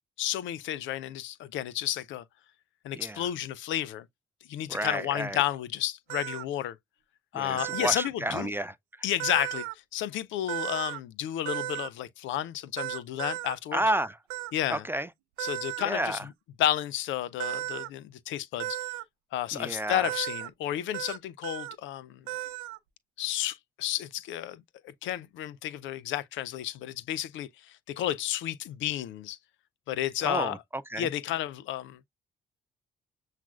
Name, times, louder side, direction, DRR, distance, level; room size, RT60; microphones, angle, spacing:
voice 1, 0.2-2.2 2.8-4.1 4.5-6.8 7.3-8.5 9.0-9.7 9.9-13.8 14.5-14.8 15.4-16.3 16.6-18.8 19.3-22.2 23.2-29.4 29.9-30.6 31.0-32.0, left 12 dB, 70° left, 0.5 m, -32 dB
voice 2, 2.9-3.3 4.7-5.4 7.3-8.7 13.7-14.2 14.7-15.1 15.8-16.2 19.5-20.1 30.2-31.1, right 1 dB, 10° right, 0.3 m, -31 dB
sound 1, 6.1-6.4 7.6-8.1 9.2-9.7 10.5-11.0 11.5-11.9 12.8-13.6 14.3-14.5 15.4-15.9 17.4-17.9 18.6-19.0 20.0-20.5 20.9-21.2 21.4-21.7 22.3-22.8, right 17 dB, 85° right, 0.5 m, -34 dB
7.2 x 2.4 x 2.3 m
hypercardioid pair, 50°, 20 cm